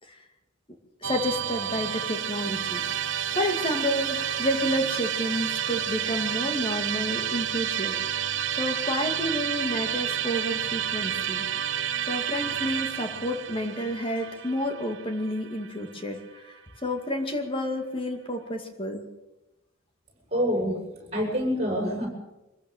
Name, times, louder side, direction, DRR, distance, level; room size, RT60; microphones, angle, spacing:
voice 1, 1.0-2.8 3.4-11.4 12.1-19.0, equal, 25° left, 4 dB, 2.4 m, -30 dB
Musical instrument, 1.0-16.2, right 9 dB, 55° right, 1.0 m, -30 dB
voice 2, 20.3-22.1, equal, 30° right, 1 dB, 7.1 m, -27 dB
24.0 x 15.5 x 7.4 m, 0.98 s
head